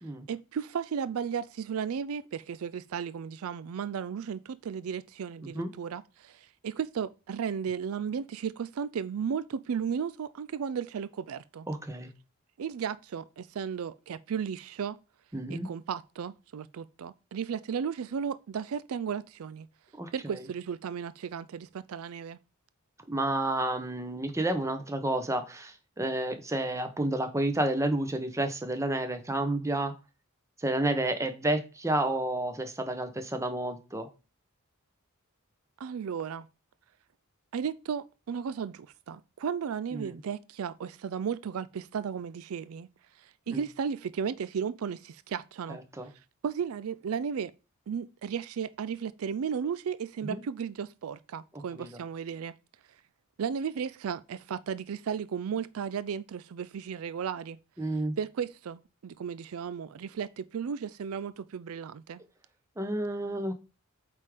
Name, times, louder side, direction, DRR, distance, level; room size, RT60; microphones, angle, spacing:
voice 1, 0.3-11.7 12.6-15.0 15.5-19.7 20.1-22.4 35.8-36.5 37.5-42.9 43.2-45.8 46.4-47.5 47.9-52.5 53.4-57.6 58.2-62.2, right 7 dB, 75° right, 0.4 m, -34 dB
voice 2, 11.7-12.1 15.3-15.7 20.0-20.4 23.1-29.9 30.6-34.1 39.9-40.2 43.5-43.6 45.7-46.1 50.2-50.4 51.5-52.0 57.8-58.1 62.8-63.5, right 1 dB, 15° right, 1.0 m, -30 dB
8.3 x 3.6 x 5.0 m
head